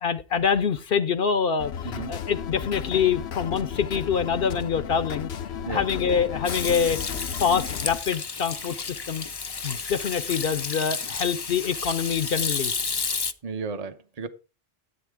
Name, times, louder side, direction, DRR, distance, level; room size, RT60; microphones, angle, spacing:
voice 1, 0.0-5.3 5.6-7.0 7.4-8.7 9.1-9.2 9.6-12.7, left 7 dB, 65° left, 0.8 m, -25 dB
sound 1, 1.6-8.0, left 8 dB, 85° left, 1.0 m, -34 dB
Hands / Sink (filling or washing), 6.4-13.3, left 4 dB, 30° left, 0.5 m, -31 dB
voice 2, 13.4-14.3, right 4 dB, 40° right, 0.9 m, -33 dB
13.5 x 8.3 x 3.5 m
omnidirectional pair, 1.1 m